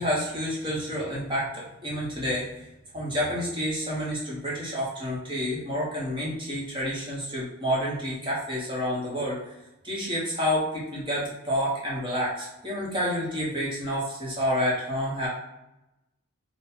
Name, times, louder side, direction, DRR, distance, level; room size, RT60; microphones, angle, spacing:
voice 1, 0.0-2.6 2.9-9.4 9.8-15.3, equal, 20° right, -6 dB, 1.2 m, -29 dB
3.9 x 2.4 x 4.3 m, 0.90 s
head